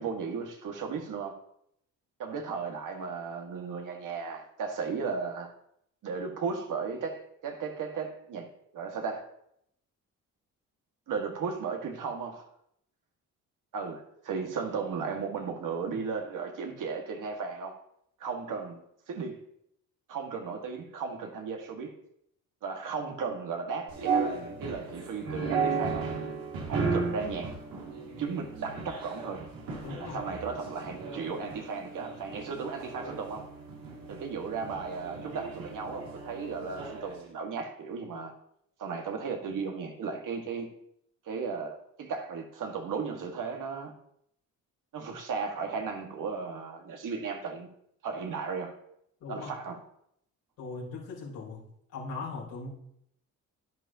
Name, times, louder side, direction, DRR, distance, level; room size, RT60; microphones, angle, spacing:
voice 1, 0.0-1.4 2.2-5.5 6.0-9.3 11.1-12.5 13.7-17.8 18.2-19.4 20.1-21.9 22.6-26.1 26.7-27.5 28.2-29.4 30.0-33.5 34.1-38.3 38.8-40.7 41.3-43.9 44.9-47.7 48.0-48.7 49.3-49.8, right 5 dB, 65° right, 1.9 m, -35 dB
sound 1, 23.9-37.2, right 5 dB, 85° right, 2.5 m, -35 dB
voice 2, 29.8-30.2 49.2-49.6 50.6-51.6 51.9-52.7, left 3 dB, 80° left, 3.8 m, -39 dB
10.5 x 10.5 x 2.9 m
cardioid pair, 80°, 34 cm